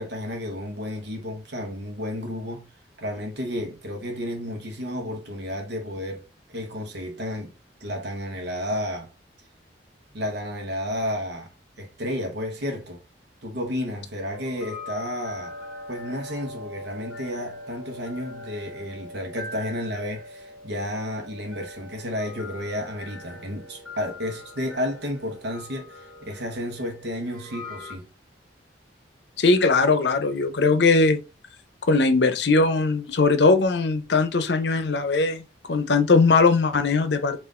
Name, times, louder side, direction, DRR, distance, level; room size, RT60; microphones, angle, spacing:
voice 1, 0.0-2.7 3.0-6.2 6.5-7.5 7.8-9.1 10.1-11.5 11.8-13.0 13.4-15.5 15.9-28.1, left 1 dB, 65° right, 0.9 m, -32 dB
sound 1, 14.3-28.0, left 2 dB, 5° left, 1.1 m, -41 dB
voice 2, 29.4-31.2 31.9-37.4, left 3 dB, 65° left, 0.6 m, -20 dB
5.7 x 2.5 x 3.6 m
head